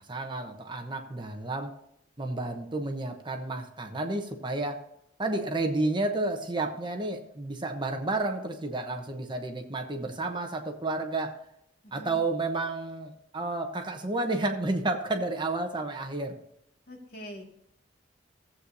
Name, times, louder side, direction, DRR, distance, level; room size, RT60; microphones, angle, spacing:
voice 1, 0.1-1.7 2.2-4.8 5.2-11.3 11.9-16.4, right 2 dB, 25° right, 4 dB, 0.9 m, -31 dB
voice 2, 11.8-12.2 16.9-17.4, equal, 55° left, 0 dB, 2.2 m, -44 dB
15.5 x 8.1 x 2.7 m, 0.76 s
head